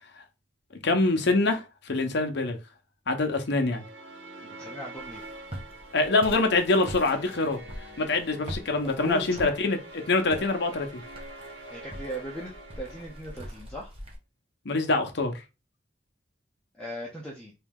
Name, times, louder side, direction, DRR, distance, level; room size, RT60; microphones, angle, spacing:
voice 1, 0.8-2.6 3.1-3.8 5.9-7.6 8.0-9.8 10.1-11.0 14.6-15.3, left 3 dB, 65° left, 0.8 m, -25 dB
sound 1, 3.4-13.8, right 1 dB, 85° right, 1.5 m, -45 dB
voice 2, 4.6-5.2 8.8-9.6 11.7-13.9 16.8-17.5, equal, 5° left, 0.7 m, -38 dB
Walk footsteps, 5.0-14.2, equal, 30° right, 1.0 m, -43 dB
3.1 x 2.8 x 3.5 m
head